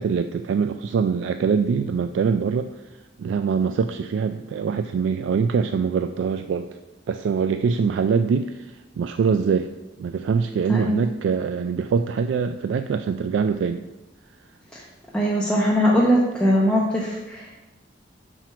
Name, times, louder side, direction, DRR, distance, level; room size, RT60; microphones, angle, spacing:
voice 1, 0.0-2.7 3.2-6.7 7.1-9.7 10.0-13.8, right 6 dB, 80° right, 9 dB, 0.3 m, -23 dB
voice 2, 10.7-11.1 14.7-14.8 15.1-17.6, equal, 5° left, -4 dB, 0.8 m, -21 dB
5.9 x 4.5 x 5.7 m, 1.0 s
head